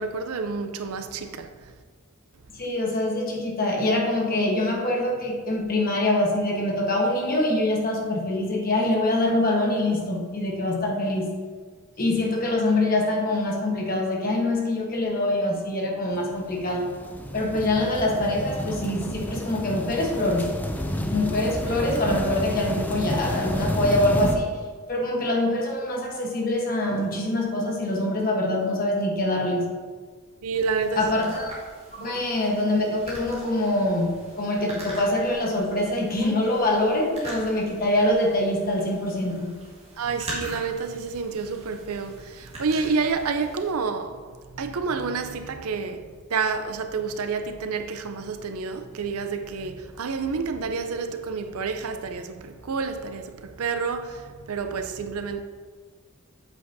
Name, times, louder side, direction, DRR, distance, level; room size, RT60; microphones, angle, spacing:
voice 1, 0.0-1.5 30.4-31.1 32.0-32.1 40.0-44.2 44.5-55.4, right 5 dB, 80° right, 0.5 m, -29 dB
voice 2, 2.5-11.3 12.0-16.9 17.3-20.6 21.1-24.5 24.9-29.8 30.9-31.5 31.9-39.6, left 1 dB, 40° left, 1.3 m, -24 dB
sound 1, 16.2-24.4, left 1 dB, 10° left, 0.4 m, -30 dB
sound 2, 30.5-43.7, right 1 dB, 30° right, 1.9 m, -42 dB
8.1 x 7.9 x 2.7 m
head